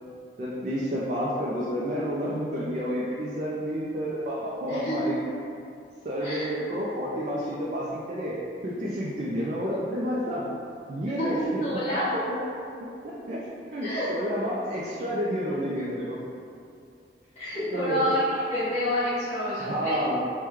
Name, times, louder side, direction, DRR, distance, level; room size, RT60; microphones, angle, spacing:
voice 1, 0.4-5.2 6.0-8.3 8.6-10.5 10.9-11.6 13.0-13.4 13.7-16.2 17.7-18.1 19.7-20.2, equal, 40° right, -6 dB, 0.3 m, -30 dB
voice 2, 4.7-5.1 6.2-6.5 11.2-12.2 13.8-14.1 17.4-20.0, equal, 35° left, -15 dB, 1.1 m, -28 dB
3.0 x 2.2 x 3.4 m, 2.5 s
head